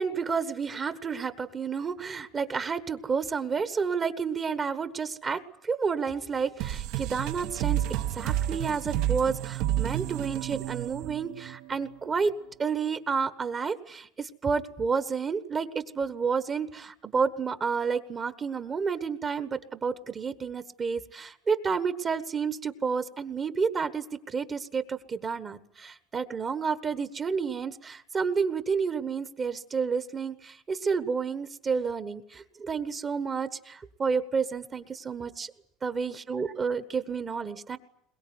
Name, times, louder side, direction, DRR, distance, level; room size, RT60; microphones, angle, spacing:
voice 1, 0.0-7.8 8.1-12.3 12.6-35.5 35.8-37.8, right 5 dB, 20° right, 11 dB, 1.3 m, -30 dB
sound 1, 6.6-11.9, right 13 dB, 60° right, 1.4 m, -30 dB
22.5 x 21.5 x 9.6 m, 0.71 s
cardioid pair, 160°, 0 cm